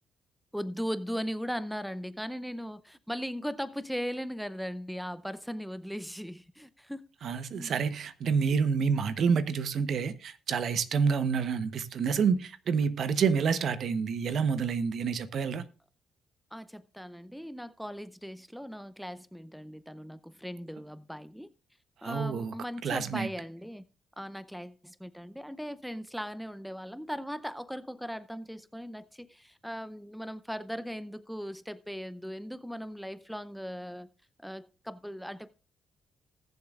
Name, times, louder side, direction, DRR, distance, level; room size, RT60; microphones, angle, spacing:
voice 1, 0.5-7.8 16.5-21.5 22.0-23.8 24.2-34.1 34.4-35.5, equal, ahead, 0.6 m, -38 dB
voice 2, 7.2-15.6 22.0-22.5 22.8-23.3, right 6 dB, 65° right, 1.0 m, -28 dB
20.0 x 7.2 x 2.4 m
cardioid pair, 90°, 0 cm